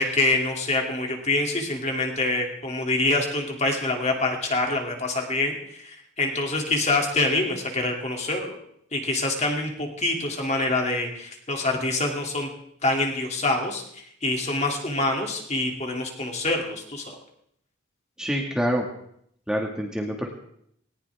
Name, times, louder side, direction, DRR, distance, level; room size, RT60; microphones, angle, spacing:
voice 1, 0.0-8.6 8.9-12.5 12.8-17.1, left 2 dB, 30° left, 1 dB, 2.8 m, -26 dB
voice 2, 18.2-18.9 19.5-20.3, equal, 5° right, 0 dB, 1.8 m, -26 dB
19.5 x 19.0 x 3.6 m, 0.69 s
head